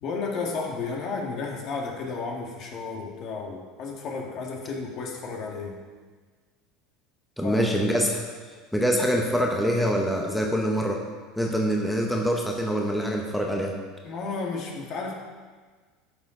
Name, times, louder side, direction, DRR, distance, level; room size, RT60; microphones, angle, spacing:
voice 1, 0.0-5.8 7.4-7.6 14.0-15.1, left 4 dB, 50° left, 0 dB, 1.8 m, -32 dB
voice 2, 7.4-8.3 8.7-11.0 11.4-13.7, equal, 5° left, 0 dB, 1.0 m, -25 dB
11.5 x 6.6 x 3.8 m, 1.5 s
supercardioid pair, 115°, 0 cm